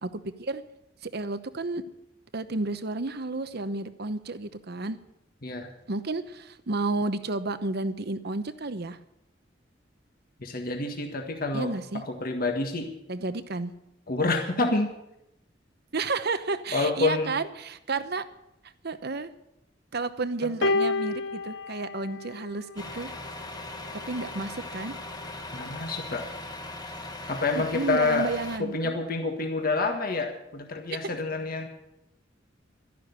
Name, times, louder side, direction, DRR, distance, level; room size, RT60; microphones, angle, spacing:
voice 1, 0.0-0.6 1.0-1.8 2.3-5.0 5.9-9.0 11.5-12.0 13.1-13.7 15.9-18.2 18.8-19.3 19.9-23.1 24.1-24.9 27.5-29.0, right 3 dB, 60° right, 12 dB, 0.9 m, -31 dB
voice 2, 10.4-11.7 12.1-12.9 14.1-14.9 16.7-17.3 25.5-26.3 27.3-28.3 28.6-31.7, left 3 dB, 50° left, 3 dB, 1.6 m, -28 dB
sound 1, 20.6-23.1 24.1-24.3, left 2 dB, 65° left, 0.8 m, -29 dB
Truck, 22.8-28.6, left 2 dB, 20° left, 1.4 m, -39 dB
12.5 x 11.5 x 8.1 m, 0.85 s
head